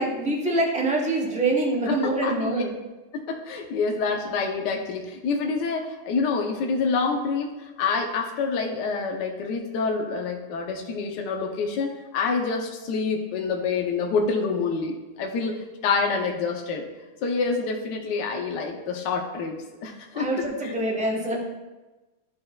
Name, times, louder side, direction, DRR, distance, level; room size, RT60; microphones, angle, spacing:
voice 1, 0.0-2.7 20.1-21.4, right 2 dB, 5° right, -2 dB, 0.7 m, -25 dB
voice 2, 1.9-2.6 3.1-16.8 17.2-19.6 19.8-20.3 20.6-20.7, left 4 dB, 70° left, 2 dB, 1.3 m, -27 dB
13.0 x 5.4 x 2.3 m, 1.2 s
omnidirectional pair, 2.1 m